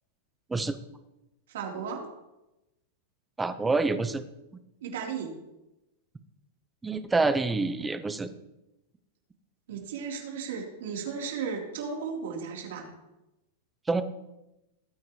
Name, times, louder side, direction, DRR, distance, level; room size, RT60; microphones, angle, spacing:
voice 1, 1.5-2.0 4.8-5.3 9.7-12.9, right 6 dB, 75° right, -1 dB, 3.7 m, -35 dB
voice 2, 3.4-4.2 6.8-8.3 13.9-14.0, right 3 dB, 10° right, 11 dB, 0.6 m, -27 dB
18.5 x 9.4 x 3.2 m, 0.95 s
supercardioid pair, 160°, 0 cm